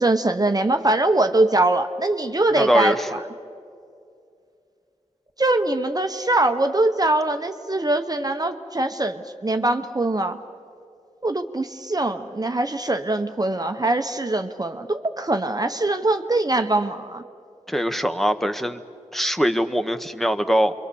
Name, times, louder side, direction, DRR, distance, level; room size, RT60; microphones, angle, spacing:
voice 1, 0.0-3.2 5.4-10.4 11.2-17.2, right 2 dB, 30° right, 7 dB, 0.9 m, -22 dB
voice 2, 2.5-3.2 17.7-18.8 19.1-20.7, equal, ahead, 9 dB, 1.1 m, -22 dB
27.5 x 23.5 x 7.0 m, 2.5 s
wide cardioid pair, 65°, 13 cm